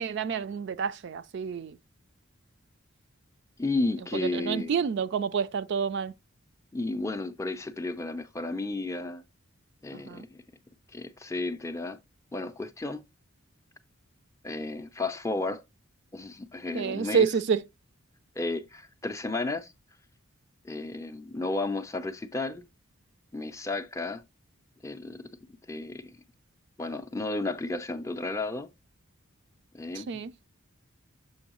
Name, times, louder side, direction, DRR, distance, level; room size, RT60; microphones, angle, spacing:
voice 1, 0.0-1.8 4.2-6.1 9.9-10.3 16.7-17.6 29.9-30.3, right 6 dB, 55° right, 0.3 m, -28 dB
voice 2, 3.6-4.8 6.7-9.2 9.8-10.4 10.9-12.0 12.3-13.0 14.4-15.6 16.1-17.3 18.4-19.7 20.6-22.7 23.3-24.2 24.8-25.3 25.7-26.2 26.8-28.7 29.7-30.1, left 2 dB, 15° left, 0.4 m, -33 dB
7.1 x 5.2 x 2.9 m
head